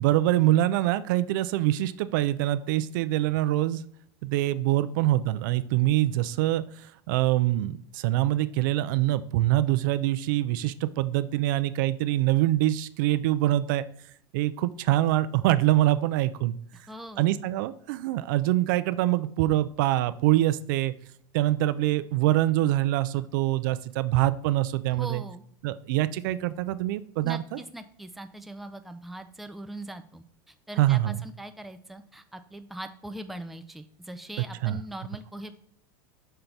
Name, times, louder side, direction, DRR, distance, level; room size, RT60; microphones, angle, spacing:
voice 1, 0.0-3.8 4.2-13.9 14.3-16.6 17.2-20.9 21.3-25.2 25.6-27.4 30.8-31.2 34.6-34.8, right 15 dB, 70° right, 13 dB, 0.4 m, -24 dB
voice 2, 16.7-17.4 24.9-25.4 27.2-35.5, right 1 dB, ahead, 8 dB, 0.4 m, -41 dB
5.5 x 3.9 x 4.5 m, 0.63 s
supercardioid pair, 135°, 11 cm